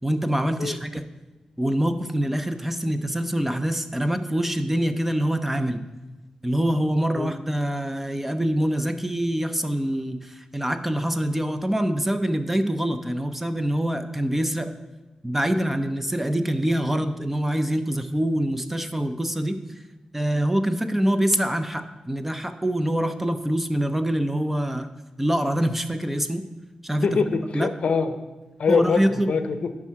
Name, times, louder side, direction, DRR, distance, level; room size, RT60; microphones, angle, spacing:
voice 1, 0.0-1.0 1.6-5.8 6.4-14.7 15.2-19.6 20.1-24.9 25.2-26.4 26.8-27.1 27.5-27.7 28.7-29.4, right 1 dB, 10° right, 9 dB, 0.5 m, -25 dB
voice 2, 27.0-28.2 28.6-29.7, left 5 dB, 70° left, 10 dB, 0.6 m, -24 dB
10.5 x 3.6 x 5.7 m, 1.1 s
wide cardioid pair, 100°, 2 cm